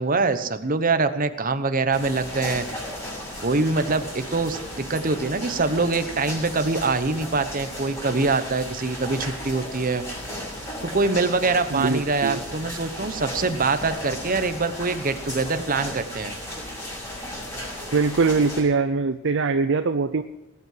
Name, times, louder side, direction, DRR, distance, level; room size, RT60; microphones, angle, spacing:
voice 1, 0.0-2.7 3.4-10.0 10.8-16.3, right 3 dB, 40° right, 10 dB, 1.1 m, -24 dB
sound 1, 1.9-18.6, left 1 dB, 15° left, 6.2 m, -35 dB
voice 2, 11.7-12.4 17.9-20.2, right 4 dB, 60° right, 9 dB, 0.6 m, -22 dB
19.5 x 8.4 x 7.8 m, 0.97 s
head